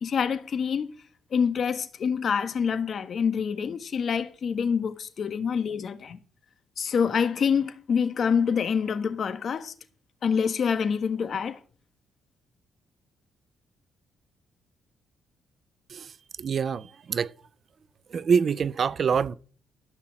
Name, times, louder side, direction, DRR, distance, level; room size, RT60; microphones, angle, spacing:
voice 1, 0.0-0.9 1.3-6.2 6.8-9.7 10.2-11.6, left 6 dB, 55° left, 1.4 m, -26 dB
voice 2, 16.4-17.3 18.1-19.3, right 6 dB, 50° right, 0.5 m, -25 dB
14.0 x 5.7 x 7.5 m
cardioid pair, 90°, 0 cm